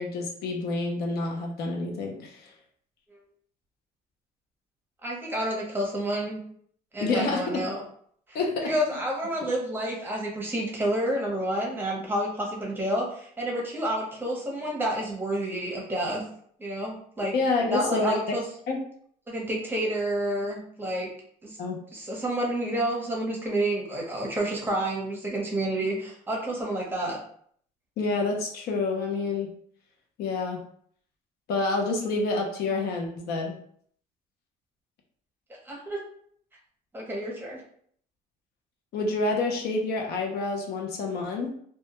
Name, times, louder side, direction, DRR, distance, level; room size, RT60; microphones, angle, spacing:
voice 1, 0.0-2.5 7.0-7.6 8.3-8.7 17.3-18.4 18.7-18.8 21.6-21.8 28.0-29.5 30.2-30.6 31.5-33.5 38.9-41.5, left 3 dB, 70° left, 2 dB, 0.6 m, -28 dB
voice 2, 5.0-6.4 6.9-7.8 8.3-16.2 16.6-17.3 17.7-18.4 19.3-21.1 21.4-21.6 21.9-27.2 35.7-36.0 36.9-37.6, right 1 dB, 10° right, -2 dB, 0.8 m, -29 dB
2.2 x 2.1 x 2.8 m, 0.62 s
cardioid pair, 110°, 17 cm